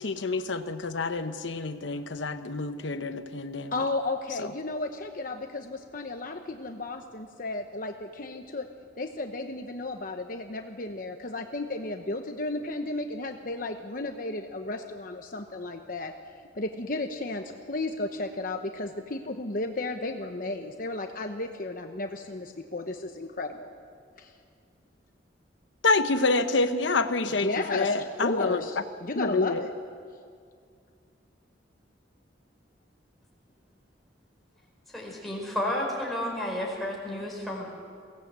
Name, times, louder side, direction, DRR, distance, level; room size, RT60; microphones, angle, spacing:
voice 1, 0.0-3.7 4.4-4.5 25.8-28.6 29.2-29.6, left 3 dB, 85° left, 9 dB, 0.9 m, -27 dB
voice 2, 3.7-8.7 9.0-16.1 16.5-23.7 24.2-24.3 27.4-29.7, left 2 dB, 50° left, 5 dB, 1.0 m, -33 dB
voice 3, 34.9-37.7, left 1 dB, ahead, -3 dB, 5.1 m, -31 dB
22.0 x 17.0 x 8.2 m, 2.2 s
head